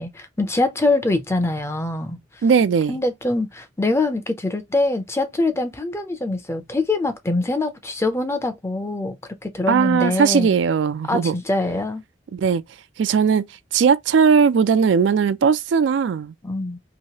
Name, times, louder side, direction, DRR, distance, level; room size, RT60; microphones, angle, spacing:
voice 1, 0.0-2.2 2.9-9.2 9.4-10.5 11.1-12.0 16.4-16.8, left 2 dB, 15° left, 0.5 m, -23 dB
voice 2, 2.4-3.0 9.7-11.3 12.3-12.6 13.0-16.3, right 6 dB, 85° right, 0.4 m, -18 dB
2.9 x 2.7 x 2.8 m
head